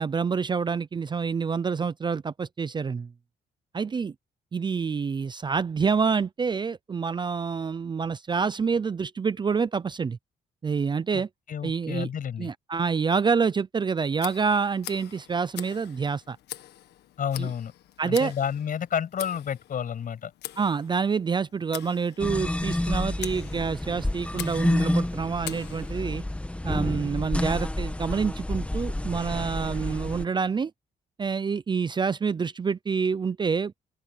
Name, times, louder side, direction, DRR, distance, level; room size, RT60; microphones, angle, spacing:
voice 1, 0.0-3.1 3.7-4.1 4.5-10.2 10.6-11.3 11.6-12.1 12.4-16.4 17.4-17.5 18.0-18.3 20.6-26.2 26.6-30.7 31.2-33.7, right 5 dB, 25° right, 0.5 m, -27 dB
voice 2, 11.1-12.5 17.2-17.7 18.0-20.3, left 8 dB, 55° left, 6.8 m, -30 dB
Tick, 14.2-26.2, left 12 dB, 90° left, 1.6 m, -44 dB
sound 1, 22.2-30.2, left 1 dB, 5° left, 1.4 m, -29 dB
open air
cardioid pair, 115°, 17 cm